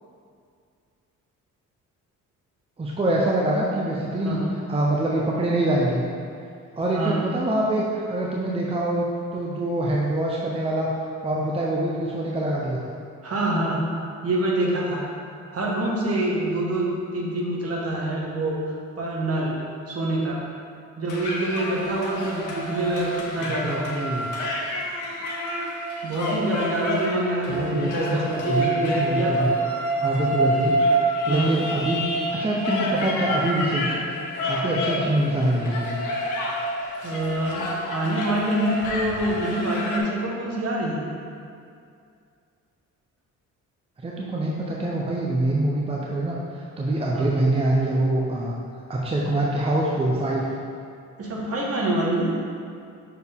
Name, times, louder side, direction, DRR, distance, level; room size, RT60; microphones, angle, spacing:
voice 1, 2.8-4.4 4.7-6.0 6.8-10.9 11.2-13.0 23.4-24.3 27.5-29.5 30.0-30.8 31.2-34.2 34.5-35.9 44.0-48.5 48.9-50.4, right 1 dB, 20° right, -4 dB, 0.7 m, -25 dB
voice 2, 13.2-13.9 14.2-15.1 15.5-16.9 17.1-18.6 19.0-19.5 19.9-20.4 21.0-24.1 26.0-29.3 31.3-31.6 37.0-41.1 47.1-47.3 51.2-52.3, right 1 dB, 50° right, -3 dB, 1.4 m, -26 dB
sound 1, 21.1-40.0, right 1 dB, 80° left, 1.0 m, -28 dB
6.4 x 4.3 x 3.6 m, 2.4 s
cardioid pair, 90°, 30 cm